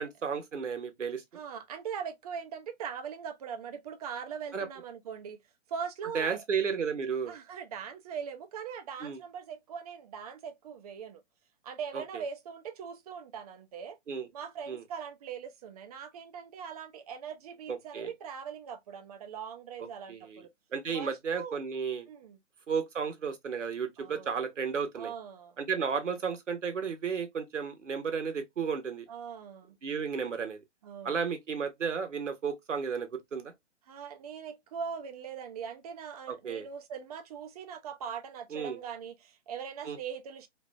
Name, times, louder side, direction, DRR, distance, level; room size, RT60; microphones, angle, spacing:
voice 1, 0.0-1.2 4.5-4.7 6.1-7.3 9.0-9.2 11.9-12.2 14.1-14.3 14.7-14.8 17.7-18.1 19.8-20.4 20.7-22.1 22.7-25.1 25.6-29.1 29.8-30.6 31.0-33.5 36.3-36.7 38.5-38.8 39.8-40.0, right 6 dB, 90° right, 1.0 m, -33 dB
voice 2, 1.3-5.4 5.7-6.4 7.3-11.2 11.6-14.0 14.3-20.5 20.9-21.6 22.1-22.4 24.0-24.5 24.9-25.6 29.1-29.8 30.8-31.2 33.9-40.5, right 7 dB, 35° right, 0.5 m, -41 dB
3.2 x 2.4 x 2.3 m
hypercardioid pair, 130°, 35 cm